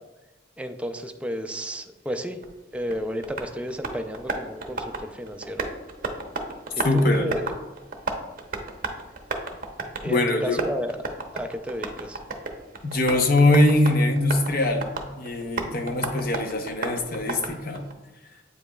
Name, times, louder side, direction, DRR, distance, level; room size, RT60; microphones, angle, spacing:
voice 1, 0.6-2.4 2.7-5.6 6.8-7.5 10.0-10.9 11.3-12.2, equal, 5° right, 6 dB, 0.3 m, -32 dB
Tap, 2.4-17.9, right 3 dB, 50° right, 0.7 m, -34 dB
voice 2, 6.8-7.3 10.1-10.6 12.9-17.8, left 2 dB, 55° left, 5 dB, 0.7 m, -22 dB
8.1 x 5.1 x 2.3 m, 1.1 s
head